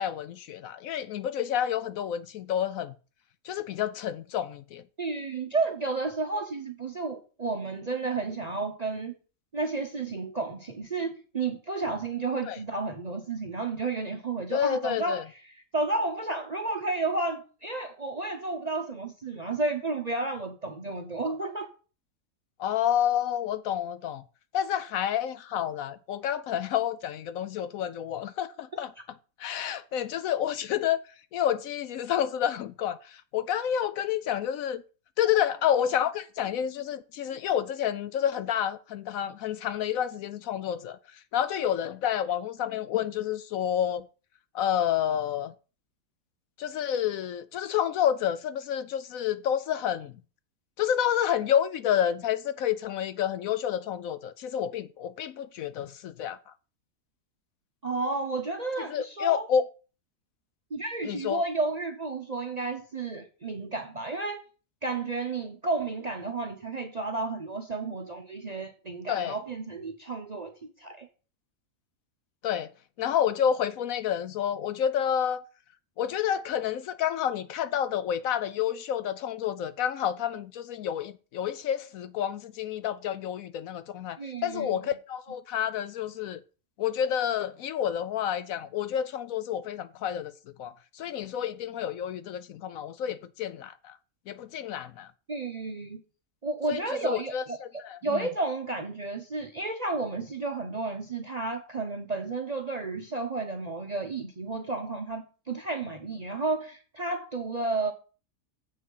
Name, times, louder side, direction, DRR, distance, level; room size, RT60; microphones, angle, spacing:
voice 1, 0.0-2.9 3.5-4.8 12.4-12.6 14.5-15.2 22.6-24.2 24.5-28.9 29.4-31.0 31.3-34.8 35.2-41.0 41.3-44.1 44.5-45.5 46.6-50.1 50.8-56.4 58.9-59.6 61.0-61.4 69.1-69.4 72.4-72.7 73.0-75.4 76.0-86.4 86.8-90.3 90.6-94.0 94.3-95.1 96.7-98.3, left 9 dB, 70° left, 0.9 m, -29 dB
voice 2, 5.0-9.1 9.5-15.2 15.5-21.7 57.8-59.5 60.7-64.4 64.8-71.1 84.2-84.8 95.3-96.0 96.4-97.6 98.0-107.9, right 3 dB, 40° right, 0.6 m, -32 dB
7.6 x 6.1 x 5.5 m
omnidirectional pair, 1.6 m